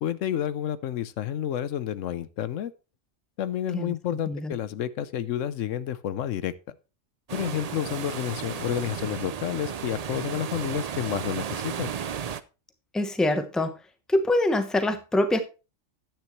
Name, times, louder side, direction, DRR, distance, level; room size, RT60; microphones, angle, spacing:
voice 1, 0.0-2.7 3.4-6.7 7.3-11.9, left 10 dB, 80° left, 1.0 m, -30 dB
sound 1, 7.3-12.4, right 8 dB, 55° right, 0.4 m, -34 dB
voice 2, 12.9-13.8 14.1-15.4, left 1 dB, ahead, 0.8 m, -24 dB
10.5 x 8.9 x 3.1 m
omnidirectional pair, 1.3 m